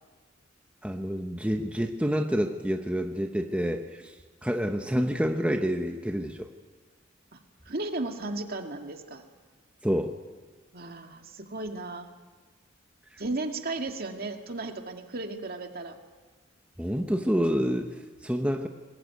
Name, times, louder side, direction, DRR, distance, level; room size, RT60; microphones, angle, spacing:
voice 1, 0.8-4.1 4.4-6.5 9.8-10.1 16.8-18.7, equal, 5° right, 4 dB, 1.0 m, -28 dB
voice 2, 7.7-9.3 10.7-12.1 13.2-16.0, right 2 dB, 50° right, 4 dB, 2.1 m, -35 dB
22.0 x 20.0 x 9.3 m, 1.4 s
head